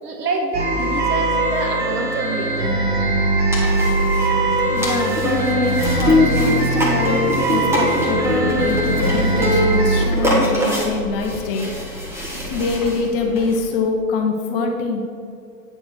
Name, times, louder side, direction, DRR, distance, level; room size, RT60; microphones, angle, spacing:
voice 1, 0.0-2.7, right 2 dB, 70° right, 2 dB, 1.4 m, -26 dB
sound 1, 0.5-10.0, right 2 dB, 20° right, 1.3 m, -20 dB
sound 2, 3.5-13.6, left 1 dB, 5° right, 1.4 m, -23 dB
voice 2, 4.7-5.2 5.5-11.7 12.5-15.0, left 4 dB, 35° left, 2 dB, 0.9 m, -24 dB
9.0 x 4.2 x 5.8 m, 2.5 s
hypercardioid pair, 125°, 48 cm